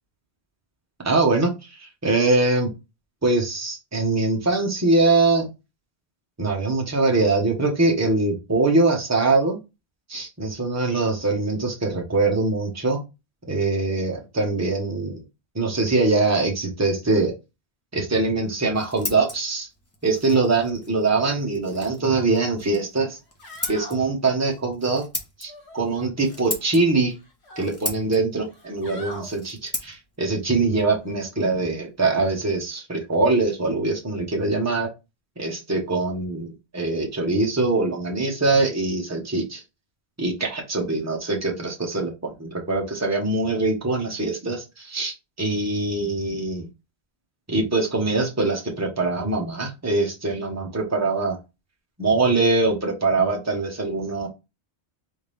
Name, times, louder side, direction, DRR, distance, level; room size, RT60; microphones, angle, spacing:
voice 1, 1.0-1.5 1.8-2.7 3.2-5.5 6.4-9.6 10.1-13.0 13.5-15.2 15.5-17.3 17.9-19.7 20.0-23.2 23.7-25.0 25.4-27.1 27.6-34.9 35.4-39.6 40.2-46.7 47.5-51.4 52.0-54.3, right 3 dB, 15° right, 0 dB, 1.1 m, -23 dB
Scissors, 18.4-32.0, left 1 dB, 15° left, 1.0 m, -38 dB
sound 1, 22.1-22.3 22.7-22.8 23.2-24.0 25.5-26.4 26.8-27.7 28.4-29.3 31.0-31.2, left 1 dB, 85° left, 1.9 m, -42 dB
4.3 x 3.6 x 3.4 m, 0.25 s
omnidirectional pair, 1.1 m